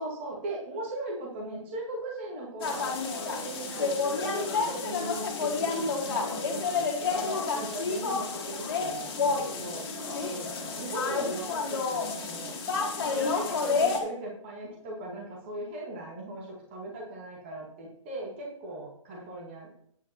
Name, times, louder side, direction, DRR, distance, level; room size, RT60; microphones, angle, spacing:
voice 1, 0.0-9.8 10.3-12.6 13.1-19.7, right 1 dB, 20° right, -3 dB, 2.0 m, -39 dB
sound 1, 2.6-14.0, left 4 dB, 45° left, 2.8 m, -30 dB
9.9 x 5.2 x 5.8 m, 0.67 s
hypercardioid pair, 180°, 17 cm